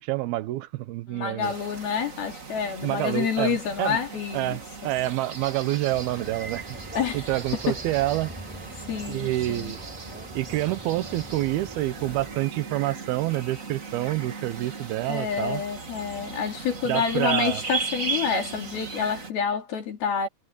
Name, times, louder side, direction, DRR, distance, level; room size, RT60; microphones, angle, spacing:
voice 1, 0.0-1.5 2.8-4.0 4.3-8.3 9.1-9.8 10.3-15.6 16.9-17.6, right 17 dB, 75° right, 2.8 m, -28 dB
voice 2, 1.1-4.6 7.0-7.8 8.8-9.8 15.0-20.3, left 6 dB, 70° left, 4.7 m, -28 dB
sound 1, 1.4-19.3, right 4 dB, 30° right, 1.5 m, -37 dB
sound 2, 5.9-12.4, equal, ahead, 7.5 m, -43 dB
omnidirectional pair, 4.6 m